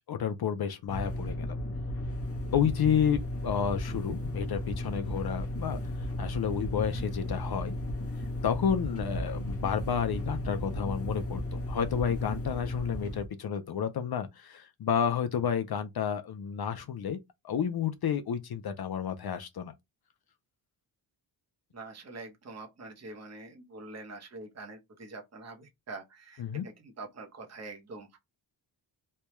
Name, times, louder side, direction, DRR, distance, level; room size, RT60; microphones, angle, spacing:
voice 1, 0.1-1.6 2.5-5.8 6.2-7.7 8.4-17.2 17.4-19.7 26.4-26.7, left 8 dB, 55° left, 0.5 m, -30 dB
sound 1, 0.9-13.3, left 1 dB, 30° left, 0.9 m, -34 dB
voice 2, 21.7-28.2, right 3 dB, 35° right, 0.9 m, -45 dB
3.3 x 2.2 x 3.0 m
wide cardioid pair, 125°, 47 cm